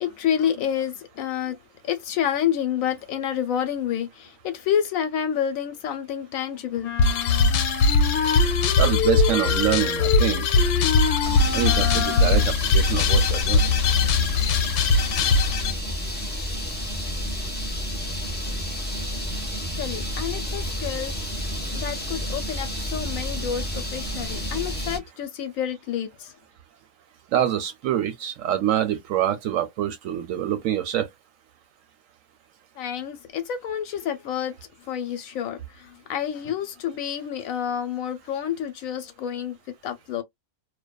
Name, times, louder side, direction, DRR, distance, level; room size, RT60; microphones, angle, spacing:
voice 1, 0.0-1.6 1.8-7.1 19.8-21.1 21.7-26.3 32.8-34.6 34.9-39.6 39.8-40.2, left 9 dB, 70° left, 0.9 m, -29 dB
sound 1, 6.8-12.6, left 7 dB, 45° left, 0.7 m, -28 dB
sound 2, 7.0-15.7, left 4 dB, 90° left, 1.1 m, -21 dB
voice 2, 8.8-10.4 11.5-13.6 27.3-31.1, right 11 dB, 70° right, 0.9 m, -25 dB
sound 3, 11.2-25.0, equal, 15° left, 0.4 m, -30 dB
2.5 x 2.2 x 2.2 m
omnidirectional pair, 1.6 m